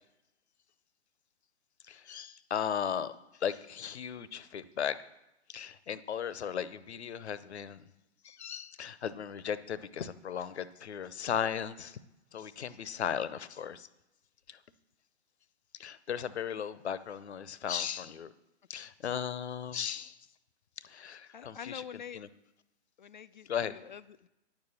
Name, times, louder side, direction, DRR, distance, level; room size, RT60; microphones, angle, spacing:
voice 1, 1.9-3.1 3.4-4.9 5.5-7.8 8.2-12.0 12.3-13.9 14.5-14.6 15.8-18.3 18.7-20.1 20.9-21.8 22.1-22.3 23.5-23.7, left 8 dB, 65° left, 16 dB, 0.8 m, -36 dB
voice 2, 21.3-22.2 23.0-24.3, left 8 dB, 45° left, 15 dB, 0.4 m, -46 dB
10.5 x 7.0 x 7.1 m, 0.94 s
figure-of-eight pair, 130°, 36 cm